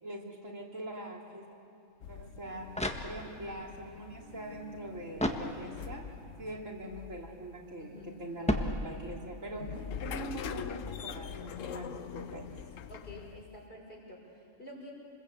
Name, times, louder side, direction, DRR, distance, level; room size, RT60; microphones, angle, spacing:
voice 1, 0.0-1.5 2.1-2.7 3.0-6.0 6.4-9.6 10.0-12.5, right 1 dB, 75° right, -1 dB, 3.7 m, -43 dB
sound 1, 2.0-13.7, left 7 dB, 75° left, 1.2 m, -44 dB
sound 2, 2.7-3.6 5.1-6.0 8.4-9.4, left 1 dB, 5° left, 1.4 m, -34 dB
voice 2, 7.8-8.2 12.9-14.9, left 1 dB, 45° left, -1 dB, 5.7 m, -49 dB
28.5 x 21.5 x 8.4 m, 2.7 s
omnidirectional pair, 1.3 m